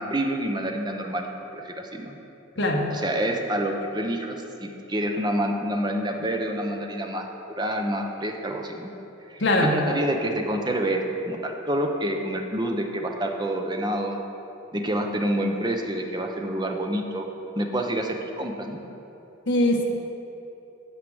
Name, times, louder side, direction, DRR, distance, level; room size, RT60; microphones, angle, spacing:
voice 1, 0.0-2.2 2.9-7.3 7.6-8.9 9.3-14.2 14.7-17.3 17.6-18.8, right 1 dB, 20° right, 3 dB, 0.7 m, -28 dB
voice 2, 2.6-2.9 9.4-9.8 19.5-19.9, left 1 dB, 60° left, 1 dB, 1.2 m, -21 dB
9.5 x 4.9 x 7.7 m, 2.9 s
head